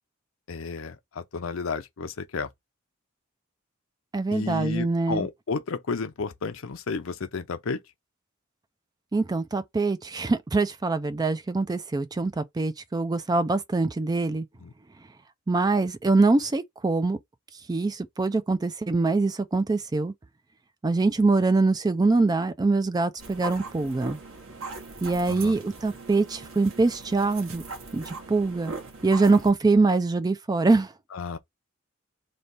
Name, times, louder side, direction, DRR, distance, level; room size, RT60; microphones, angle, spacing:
voice 1, 0.5-2.5 4.3-7.8 14.6-14.7 25.3-25.6 31.1-31.4, left 4 dB, 70° left, 0.6 m, -32 dB
voice 2, 4.1-5.3 9.1-14.5 15.5-17.2 17.7-20.1 20.8-24.2 25.0-27.6 27.9-28.7 29.0-30.9, right 3 dB, 20° right, 0.3 m, -24 dB
sound 1, 23.2-29.5, right 3 dB, 80° right, 1.3 m, -40 dB
3.3 x 2.7 x 3.9 m
head